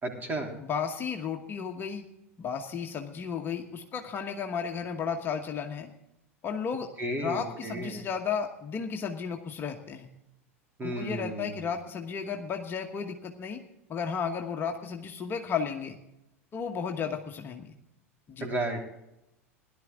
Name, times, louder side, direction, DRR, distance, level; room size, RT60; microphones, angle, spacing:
voice 1, 0.0-0.5 7.0-8.0 10.8-11.6 18.4-18.8, right 1 dB, 25° right, 2 dB, 3.3 m, -33 dB
voice 2, 0.6-2.0 2.4-5.9 6.4-6.9 7.2-10.1 10.8-13.6 13.9-16.0 16.5-17.7 18.3-18.5, left 6 dB, 30° left, 3 dB, 1.2 m, -33 dB
17.5 x 11.5 x 3.7 m, 0.87 s
figure-of-eight pair, 85°, 8 cm